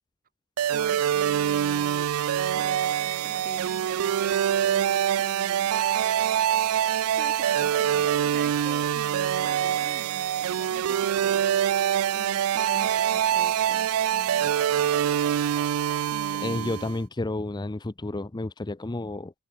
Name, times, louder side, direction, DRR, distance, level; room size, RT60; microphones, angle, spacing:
sound 1, 0.6-17.0, right 10 dB, 80° right, 0.3 m, -25 dB
voice 1, 0.7-2.1 2.5-5.9 7.2-14.6 16.1-16.8, right 3 dB, 45° right, 2.3 m, -44 dB
voice 2, 16.4-19.3, left 2 dB, 20° left, 0.6 m, -31 dB
head